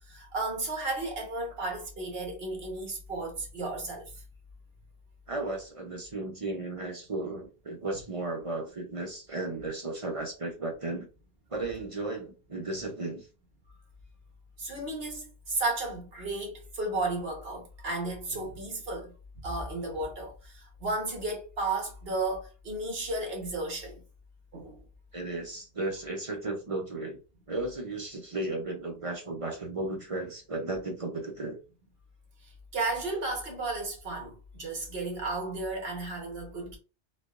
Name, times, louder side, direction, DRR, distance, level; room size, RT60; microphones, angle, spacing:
voice 1, 0.1-4.2 7.9-8.0 14.6-19.1 19.4-24.0 24.5-24.8 32.7-36.8, right 2 dB, 60° right, 1.4 m, -33 dB
voice 2, 5.3-11.1 11.5-13.3 25.1-27.2 27.5-31.6, right 2 dB, 35° right, 0.6 m, -35 dB
3.9 x 2.9 x 2.4 m
omnidirectional pair, 1.2 m